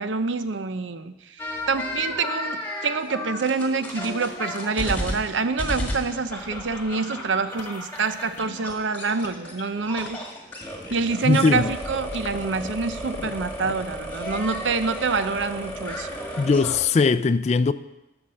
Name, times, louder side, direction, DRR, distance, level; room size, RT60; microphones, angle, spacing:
voice 1, 0.0-10.2 10.9-16.1, right 4 dB, 90° right, 0.7 m, -26 dB
sound 1, 1.4-9.5 9.8-16.9, left 1 dB, 10° left, 1.6 m, -33 dB
sound 2, 3.8-16.5, equal, 25° right, 1.2 m, -49 dB
sound 3, 7.6-14.0, left 4 dB, 85° left, 0.7 m, -45 dB
voice 2, 11.2-11.7 16.4-17.7, left 4 dB, 35° left, 0.3 m, -20 dB
11.0 x 5.9 x 6.5 m
head